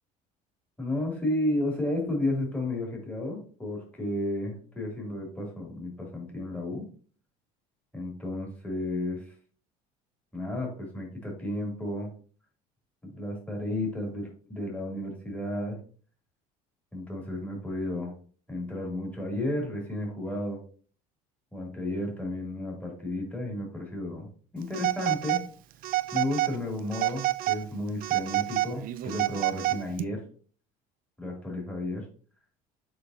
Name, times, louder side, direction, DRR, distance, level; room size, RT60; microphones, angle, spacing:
voice 1, 0.8-6.8 7.9-9.2 10.3-12.1 13.0-15.8 16.9-18.1 18.5-20.6 21.5-24.3 24.5-25.4 26.1-30.2 31.2-32.0, left 1 dB, 10° left, -2 dB, 2.9 m, -32 dB
Telephone, 24.7-25.5 25.8-26.6 26.9-27.6 28.0-30.0, right 17 dB, 55° right, 0.4 m, -28 dB
6.8 x 5.4 x 2.8 m, 0.42 s
supercardioid pair, 90°, 18 cm